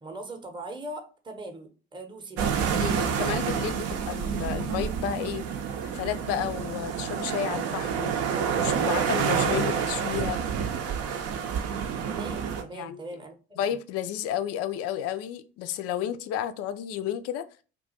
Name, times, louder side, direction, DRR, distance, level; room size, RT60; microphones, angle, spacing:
voice 1, 0.0-2.5 12.1-13.6, right 2 dB, 15° right, 0.7 m, -40 dB
sound 1, 2.4-12.6, right 7 dB, 55° right, 0.6 m, -28 dB
voice 2, 2.8-5.5 5.8-8.3 8.6-10.4 12.7-13.0 13.6-17.4, left 10 dB, 55° left, 0.4 m, -32 dB
2.4 x 2.3 x 3.9 m
hypercardioid pair, 50°, 29 cm